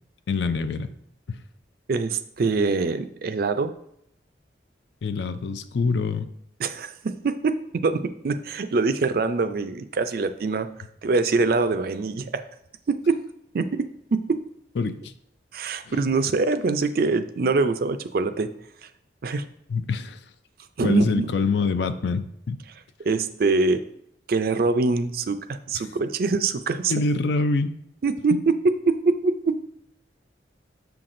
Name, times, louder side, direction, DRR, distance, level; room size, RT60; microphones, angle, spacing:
voice 1, 0.3-0.9 5.0-6.3 14.8-15.1 15.9-16.0 19.7-20.2 20.8-22.6 26.9-27.7, left 4 dB, 70° left, 11 dB, 0.4 m, -25 dB
voice 2, 1.9-3.7 6.6-10.7 11.0-12.4 12.9-13.2 13.5-14.4 15.5-18.5 19.2-19.4 20.8-21.3 23.0-23.8 24.3-26.9 28.0-28.5 28.9-29.6, right 4 dB, 55° right, 10 dB, 0.4 m, -24 dB
7.0 x 5.8 x 2.6 m, 0.72 s
head